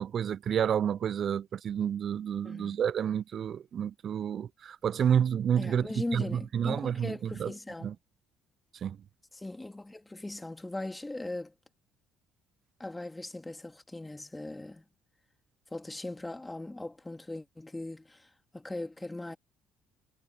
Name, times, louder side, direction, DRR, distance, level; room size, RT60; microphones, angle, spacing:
voice 1, 0.0-7.5 7.8-7.9 8.8-9.0, right 8 dB, 55° right, 0.3 m, -30 dB
voice 2, 2.4-2.8 5.6-7.9 9.3-11.5 12.8-14.8 15.7-19.4, left 2 dB, 15° left, 2.9 m, -39 dB
hypercardioid pair, 65°, 0 cm